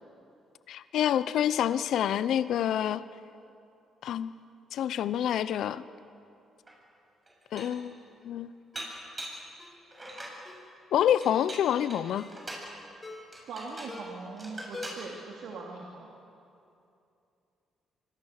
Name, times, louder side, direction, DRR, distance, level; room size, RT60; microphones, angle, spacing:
voice 1, 0.7-3.0 4.0-4.3 4.7-5.8 7.5-8.5 10.9-12.3, left 10 dB, 75° left, 15 dB, 0.7 m, -27 dB
Dishes pots and pans, 6.7-6.8 7.3-7.9 8.7-9.5 9.9-10.4 11.2-12.7 13.3-14.0 14.4-15.0, right 1 dB, 25° right, 7.4 m, -42 dB
Ringtone, 8.7-9.0 9.6-9.8 10.5-10.7 11.3-11.6 12.2-12.5 13.0-13.4 13.9-14.3 14.7-15.2 15.5-15.6, left 3 dB, 30° left, 5.6 m, -45 dB
voice 2, 13.5-16.1, right 4 dB, 75° right, -2 dB, 2.8 m, -41 dB
25.5 x 25.0 x 6.6 m, 2.7 s
cardioid pair, 90°, 0 cm